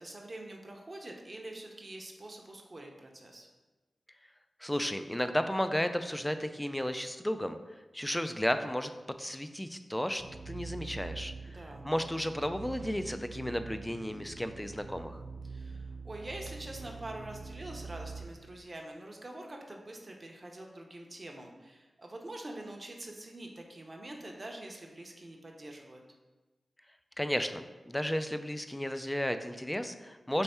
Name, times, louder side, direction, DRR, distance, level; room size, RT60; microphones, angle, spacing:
voice 1, 0.0-3.5 11.4-11.8 15.4-26.0, right 1 dB, 40° right, 1 dB, 0.7 m, -45 dB
voice 2, 4.6-7.6 7.9-8.9 9.2-11.3 11.8-15.2 27.2-30.4, equal, 10° left, 9 dB, 0.3 m, -33 dB
sound 1, 10.2-18.2, right 4 dB, 75° right, 0.9 m, -44 dB
3.4 x 3.3 x 4.2 m, 1.2 s
cardioid pair, 50°, 0 cm